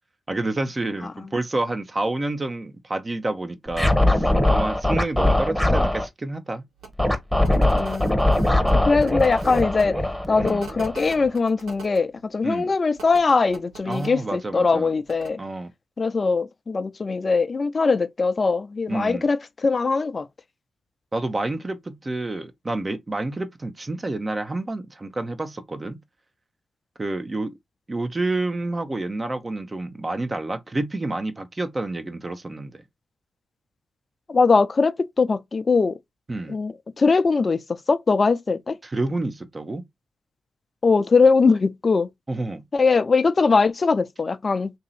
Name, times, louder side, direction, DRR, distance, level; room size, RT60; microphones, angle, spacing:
voice 1, 0.3-6.6 10.4-10.6 12.4-12.7 13.8-14.9 15.4-15.7 18.9-19.3 21.1-26.0 27.0-27.5 27.9-32.8 36.3-36.6 38.8-39.8 42.3-42.6, right 2 dB, 30° right, 0.9 m, -29 dB
Scratching (performance technique), 3.7-6.0 7.0-11.3, left 1 dB, ahead, 1.1 m, -21 dB
sound 1, 6.8-6.9 7.4-9.8 10.4-12.0 13.0-14.1 15.1-15.3, right 4 dB, 75° right, 1.5 m, -42 dB
voice 2, 7.7-8.2 8.7-10.0 10.3-15.4 16.0-20.2 34.3-36.0 36.5-37.6 37.9-38.8 40.8-42.1 42.7-44.7, left 4 dB, 45° left, 0.5 m, -21 dB
3.0 x 2.8 x 4.0 m
supercardioid pair, 45°, 0 cm